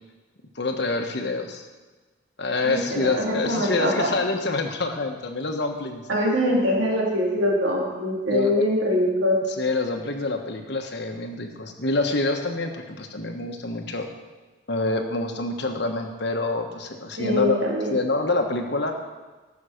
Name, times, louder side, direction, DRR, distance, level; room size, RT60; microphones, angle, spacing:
voice 1, 0.5-1.6 2.4-6.0 8.3-8.7 9.6-14.1 14.7-17.6 17.9-18.9, left 3 dB, 55° left, 4 dB, 1.2 m, -26 dB
voice 2, 2.6-4.1 6.1-9.4 17.2-18.0, equal, 70° right, -2 dB, 2.9 m, -23 dB
14.5 x 6.4 x 6.5 m, 1.3 s
head